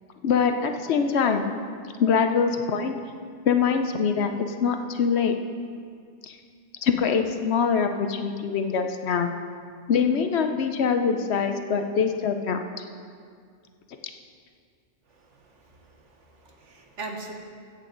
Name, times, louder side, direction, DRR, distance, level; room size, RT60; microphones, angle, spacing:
voice 1, 0.2-1.5 2.0-3.0 3.5-4.3 4.6-5.4 6.3-6.4 6.8-9.3 9.9-12.6, left 6 dB, 65° left, 6 dB, 0.8 m, -23 dB
voice 2, 15.2-16.0 16.3-17.3, right 3 dB, 70° right, 3 dB, 1.5 m, -40 dB
15.0 x 8.3 x 3.8 m, 2.2 s
omnidirectional pair, 1.3 m